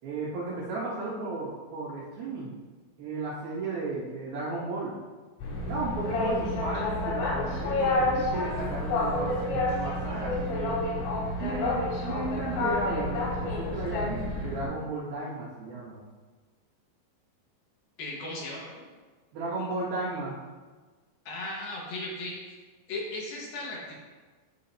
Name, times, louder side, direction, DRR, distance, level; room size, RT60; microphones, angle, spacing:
voice 1, 0.0-2.5 3.0-5.0 5.7-10.8 11.4-16.0 19.3-20.4, right 2 dB, 55° right, -12 dB, 3.6 m, -34 dB
Boat Water vehicle, 5.4-14.6, left 2 dB, 90° left, 4.9 m, -29 dB
voice 2, 18.0-18.8 21.3-22.4 22.9-23.9, left 2 dB, 60° left, -4 dB, 2.9 m, -36 dB
16.0 x 5.5 x 2.9 m, 1.4 s
omnidirectional pair, 5.4 m